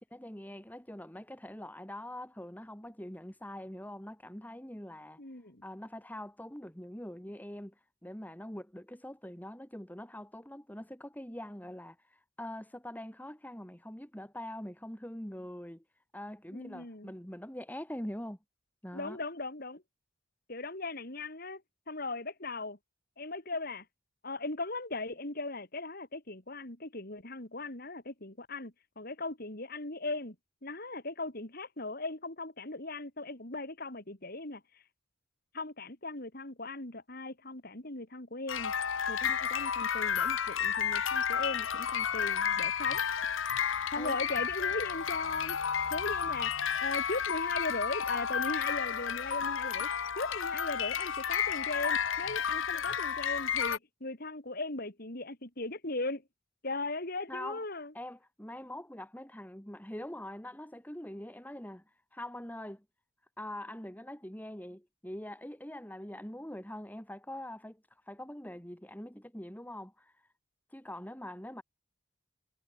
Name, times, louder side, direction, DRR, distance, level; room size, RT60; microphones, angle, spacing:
voice 1, 0.1-5.2 5.6-15.8 16.1-18.4 18.8-19.2 44.0-44.2 57.3-57.6 57.9-62.8 63.4-70.3 70.7-71.6, left 1 dB, 10° left, 2.5 m, -44 dB
voice 2, 5.2-5.6 16.5-17.1 18.9-19.8 20.5-22.8 23.2-23.9 24.2-30.4 30.6-34.8 35.5-38.7 39.1-43.0 43.9-45.6 45.9-49.9 50.2-56.2 56.6-57.9, left 2 dB, 50° left, 3.6 m, -38 dB
sound 1, 38.5-53.8, left 7 dB, 90° left, 1.0 m, -32 dB
head